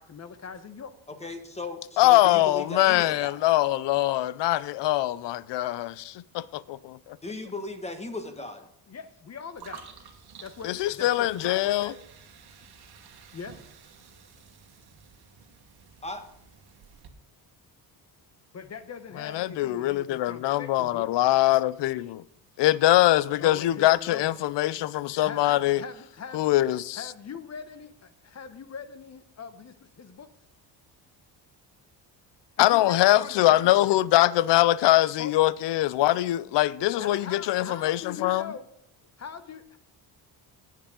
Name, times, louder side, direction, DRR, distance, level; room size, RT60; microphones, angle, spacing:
voice 1, 0.0-0.9 8.9-9.9 10.4-12.0 13.3-13.6 18.5-21.1 23.4-24.3 25.2-26.4 27.0-30.3 32.6-33.7 35.2-35.3 37.0-38.7 39.2-39.8, left 6 dB, 40° left, 0.9 m, -41 dB
voice 2, 1.1-3.4 7.1-8.7 16.0-16.3, left 2 dB, 15° left, 1.6 m, -37 dB
voice 3, 2.0-7.2 10.6-11.9 19.2-22.2 22.6-25.8 26.3-27.1 32.6-38.5, left 15 dB, 75° left, 0.6 m, -23 dB
sound 1, 9.6-17.1, right 6 dB, 60° right, 1.7 m, -51 dB
19.0 x 7.4 x 3.8 m
cardioid pair, 115°, 42 cm